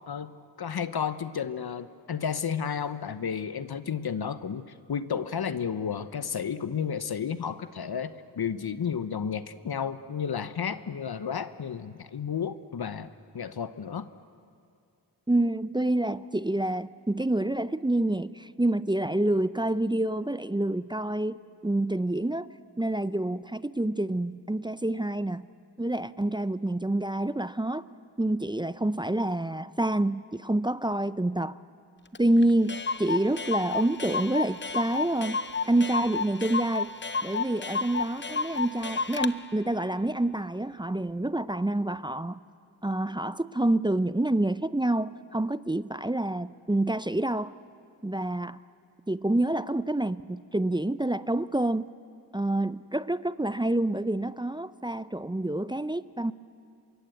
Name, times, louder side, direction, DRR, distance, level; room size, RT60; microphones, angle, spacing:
voice 1, 0.6-13.1 13.3-14.1, left 7 dB, 60° left, 1.0 m, -32 dB
voice 2, 15.3-21.4 21.6-22.5 22.8-25.5 25.8-27.9 28.2-31.6 32.2-35.4 35.7-36.9 37.2-42.4 42.8-47.5 48.0-48.6 49.1-51.9 52.3-56.3, right 1 dB, 10° right, 0.5 m, -27 dB
Clock, 32.1-32.2 32.4-32.5 32.7-39.3, left 4 dB, 25° left, 0.8 m, -31 dB
26.5 x 22.5 x 8.1 m
cardioid pair, 55°, 42 cm